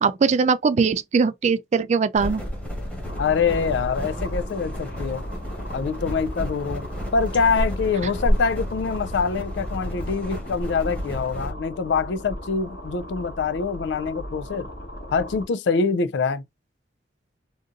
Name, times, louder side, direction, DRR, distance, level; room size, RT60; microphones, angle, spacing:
voice 1, 0.0-2.4, right 5 dB, 40° right, 0.3 m, -21 dB
sound 1, 2.1-11.5, equal, 5° left, 1.3 m, -30 dB
sound 2, 3.0-15.4, equal, 60° left, 1.5 m, -38 dB
voice 2, 3.2-5.3 5.7-6.8 7.1-14.7 15.1-16.4, left 5 dB, 80° left, 0.4 m, -25 dB
3.8 x 2.5 x 2.5 m
head